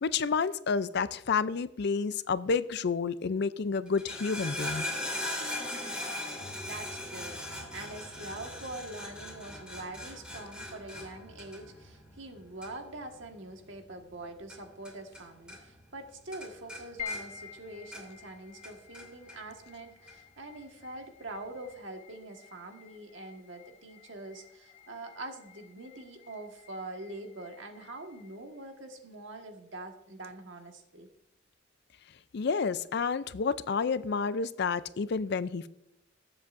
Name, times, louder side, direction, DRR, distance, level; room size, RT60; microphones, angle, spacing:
voice 1, 0.0-4.9 32.3-35.7, left 5 dB, 60° left, 16 dB, 0.5 m, -30 dB
sound 1, 3.9-15.2 15.5-16.0 16.3-18.3 18.6-19.4 20.1-20.2, left 1 dB, 5° right, 2.7 m, -40 dB
voice 2, 6.6-31.1, right 2 dB, 75° right, 4 dB, 1.6 m, -44 dB
sound 2, 17.0-31.5, left 6 dB, 35° left, 2.0 m, -50 dB
19.5 x 7.9 x 2.6 m, 0.87 s
head